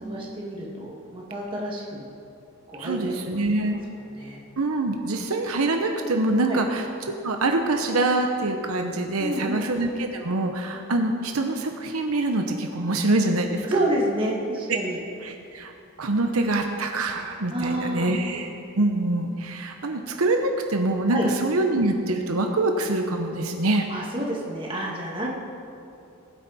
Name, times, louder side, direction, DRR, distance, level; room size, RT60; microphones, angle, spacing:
voice 1, 0.0-2.1 2.7-3.4 4.1-4.4 6.4-6.6 9.2-9.6 13.6-15.0 17.5-18.1 21.1-21.3 23.9-25.3, right 1 dB, 25° right, -3 dB, 2.1 m, -29 dB
voice 2, 2.8-3.8 4.6-6.8 7.2-13.7 14.7-14.8 15.2-15.7 16.0-18.5 18.8-23.9, right 2 dB, 80° right, 4 dB, 1.0 m, -25 dB
20.0 x 9.1 x 4.3 m, 2.6 s
head